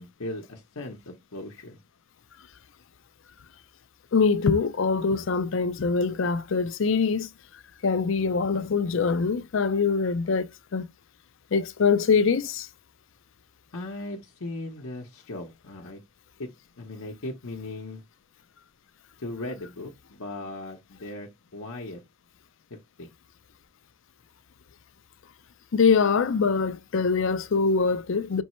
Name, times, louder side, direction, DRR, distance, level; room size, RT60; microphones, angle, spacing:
voice 1, 0.0-1.8 13.7-16.0 16.4-16.5 16.8-18.0 19.2-22.0 22.7-23.1, left 2 dB, 75° left, 0.8 m, -38 dB
voice 2, 4.1-7.3 7.8-10.4 10.7-10.8 11.5-12.6 25.7-28.4, left 5 dB, 60° left, 0.5 m, -23 dB
5.3 x 3.2 x 3.0 m
head